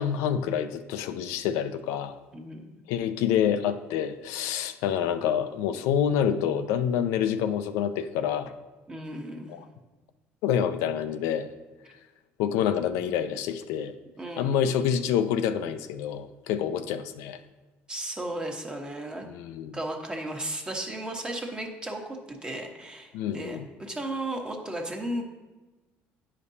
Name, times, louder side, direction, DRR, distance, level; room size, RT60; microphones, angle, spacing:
voice 1, 0.0-2.1 2.9-8.5 9.5-9.7 10.4-11.5 12.4-13.9 14.4-17.4 19.3-19.8 23.1-23.7, left 9 dB, 85° left, 9 dB, 0.4 m, -27 dB
voice 2, 2.3-2.8 8.9-9.6 14.2-14.7 17.9-19.3 19.7-25.2, right 1 dB, 15° right, 2 dB, 1.1 m, -35 dB
9.4 x 5.1 x 2.7 m, 1.2 s
cardioid pair, 95°, 5 cm